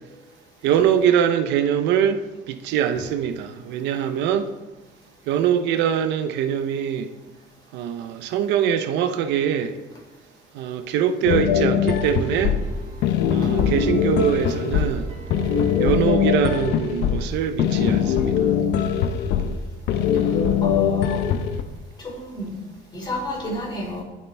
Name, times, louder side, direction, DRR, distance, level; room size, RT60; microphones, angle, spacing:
voice 1, 0.6-2.2 2.5-4.5 5.3-7.1 7.7-9.7 10.5-12.6 13.3-15.1 15.8-18.3, right 9 dB, 85° right, 0.9 m, -23 dB
sound 1, 11.2-21.6, left 8 dB, 75° left, 1.0 m, -22 dB
sound 2, 12.2-16.6 17.0-17.1, right 3 dB, 35° right, 2.0 m, -38 dB
voice 2, 20.3-21.2 22.0-22.5 22.9-24.0, left 1 dB, 25° left, 4.6 m, -31 dB
21.0 x 7.6 x 3.5 m
cardioid pair, 145°, 18 cm